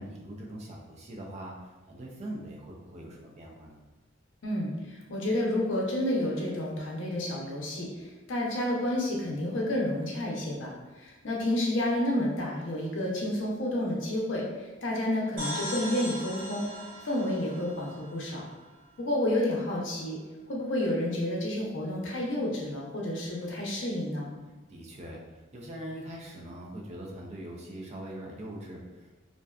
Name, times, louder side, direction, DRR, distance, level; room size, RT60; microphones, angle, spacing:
voice 1, 0.0-3.8 24.7-29.1, right 1 dB, 35° right, -2 dB, 0.4 m, -42 dB
voice 2, 4.4-16.7 17.0-18.4 19.0-20.2 20.5-24.3, left 1 dB, 65° left, -2 dB, 0.6 m, -30 dB
sound 1, 15.4-19.0, left 1 dB, 70° right, 0.8 m, -39 dB
2.5 x 2.2 x 2.3 m, 1.2 s
head